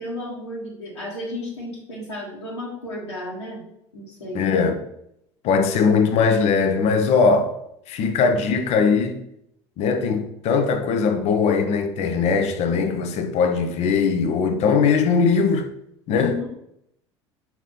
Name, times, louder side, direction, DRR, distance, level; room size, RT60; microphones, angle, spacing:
voice 1, 0.0-3.6 3.9-4.5 16.1-16.5, left 2 dB, 80° left, 1.6 m, -33 dB
voice 2, 4.3-4.8 5.4-7.6 7.9-9.2 9.8-15.7 16.1-16.3, left 5 dB, 50° left, 0.8 m, -20 dB
5.8 x 4.2 x 4.1 m
figure-of-eight pair, 65°, 15 cm